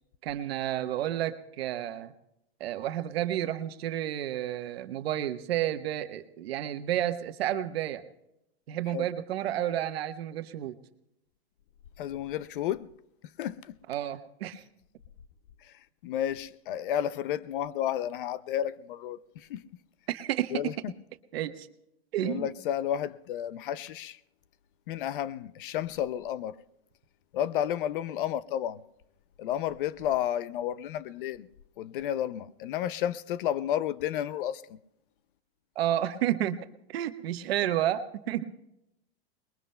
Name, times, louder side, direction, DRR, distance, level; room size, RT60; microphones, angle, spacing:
voice 1, 0.2-2.1 2.6-8.0 8.7-10.8 13.9-14.6 20.1-20.7 21.3-21.7 22.1-22.5 35.7-36.6 36.9-38.4, right 12 dB, 75° right, 1.2 m, -31 dB
voice 2, 12.0-12.9 13.4-13.8 15.6-15.7 16.0-19.6 20.5-20.9 22.2-24.2 24.9-26.6 27.3-28.8 29.4-31.5 31.8-34.8, left 11 dB, 55° left, 0.5 m, -32 dB
29.5 x 21.0 x 2.2 m
supercardioid pair, 170°, 31 cm